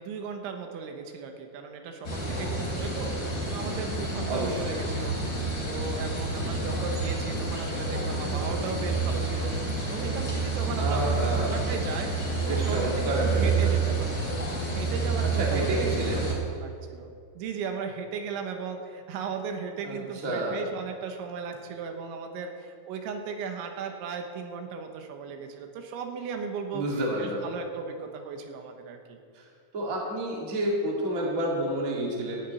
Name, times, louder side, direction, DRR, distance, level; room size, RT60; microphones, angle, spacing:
voice 1, 0.0-5.2 5.7-14.2 14.7-26.9 27.2-29.2, right 5 dB, 85° right, 4 dB, 3.5 m, -36 dB
sound 1, 2.0-16.3, right 3 dB, 25° left, 3.0 m, -29 dB
voice 2, 4.3-4.8 10.8-11.7 12.4-13.8 15.4-16.4 19.8-20.6 26.7-27.5 29.3-29.4 29.7-32.4, right 1 dB, 30° right, -3 dB, 1.7 m, -30 dB
12.5 x 7.3 x 9.1 m, 2.3 s
omnidirectional pair, 5.3 m